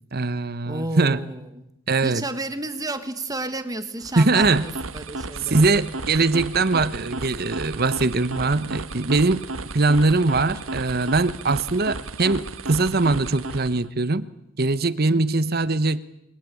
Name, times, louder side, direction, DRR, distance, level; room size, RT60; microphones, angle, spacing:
voice 1, 0.1-1.2 1.9-2.2 4.2-4.6 5.5-9.5 9.7-14.3 14.6-16.0, right 3 dB, 50° right, 15 dB, 1.1 m, -21 dB
voice 2, 0.7-1.7 2.0-5.8 15.1-15.5, right 2 dB, 20° right, 10 dB, 1.7 m, -32 dB
sound 1, 4.0-13.9, right 2 dB, 85° right, 1.5 m, -34 dB
28.0 x 23.0 x 8.5 m, 0.85 s
head